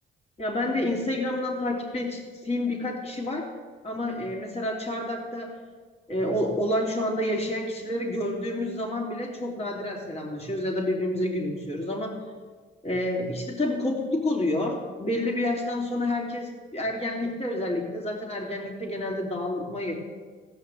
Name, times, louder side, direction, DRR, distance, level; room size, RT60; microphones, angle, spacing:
voice 1, 0.4-3.5 3.8-5.6 6.1-12.2 12.8-19.9, left 1 dB, 30° left, -1 dB, 3.3 m, -29 dB
16.0 x 5.7 x 8.1 m, 1.5 s
cardioid pair, 90°, 20 cm